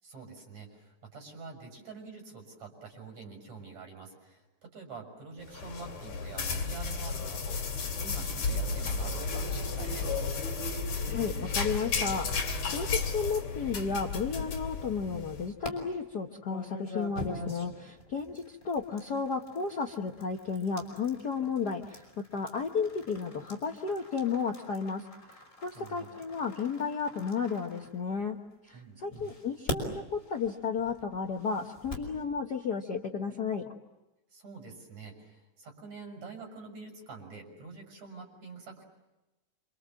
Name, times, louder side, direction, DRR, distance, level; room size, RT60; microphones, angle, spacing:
voice 1, 0.0-10.2 25.7-26.2 28.7-29.4 34.3-38.8, right 4 dB, 65° right, 3 dB, 7.7 m, -46 dB
sound 1, 5.4-15.4, left 4 dB, 65° left, 4.1 m, -33 dB
voice 2, 11.1-25.0 25.3-28.4 28.6-33.7, left 5 dB, 50° left, 3 dB, 1.2 m, -33 dB
sound 2, 14.8-15.7 16.4-28.5 29.1-32.2, left 1 dB, 15° left, 5.6 m, -43 dB
27.5 x 27.5 x 7.6 m, 1.0 s
omnidirectional pair, 3.3 m